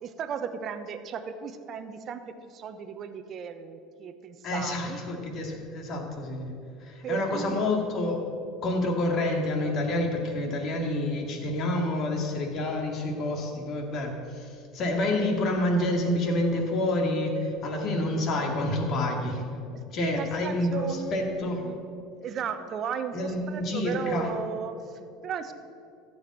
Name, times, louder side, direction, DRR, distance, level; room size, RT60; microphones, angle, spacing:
voice 1, 0.0-5.0 7.0-7.6 19.7-21.3 21.6-21.8 22.2-25.5, right 6 dB, 45° right, 9 dB, 0.9 m, -35 dB
voice 2, 4.4-8.3 8.6-19.4 19.9-21.6 23.1-24.3, left 1 dB, 45° left, 2 dB, 2.2 m, -28 dB
14.5 x 5.2 x 7.5 m, 2.5 s
hypercardioid pair, 75°, 0 cm